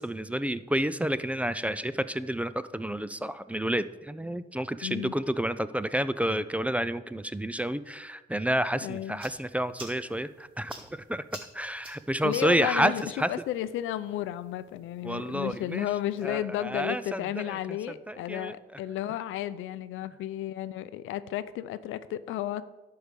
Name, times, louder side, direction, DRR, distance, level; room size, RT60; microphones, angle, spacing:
voice 1, 0.0-11.2 11.5-13.3 15.0-15.9 16.2-18.5, right 1 dB, 5° right, 14 dB, 0.4 m, -30 dB
voice 2, 4.8-5.1 8.8-9.2 12.2-22.6, left 12 dB, 85° left, 15 dB, 0.5 m, -33 dB
sound 1, 8.8-16.2, right 1 dB, 25° right, 3.1 m, -51 dB
11.5 x 4.8 x 6.7 m, 1.1 s
cardioid pair, 90°, 20 cm